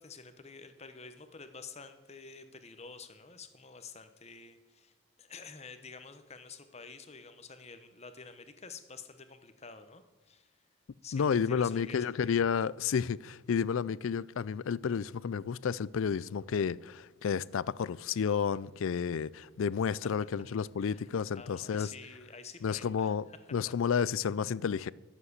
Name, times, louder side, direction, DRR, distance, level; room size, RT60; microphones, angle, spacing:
voice 1, 0.0-10.6 11.0-12.2 20.2-20.5 20.8-21.1 21.3-23.5, left 5 dB, 30° left, 0.9 m, -49 dB
voice 2, 11.1-21.9 22.6-24.9, left 6 dB, 70° left, 0.4 m, -31 dB
11.0 x 7.5 x 8.0 m
head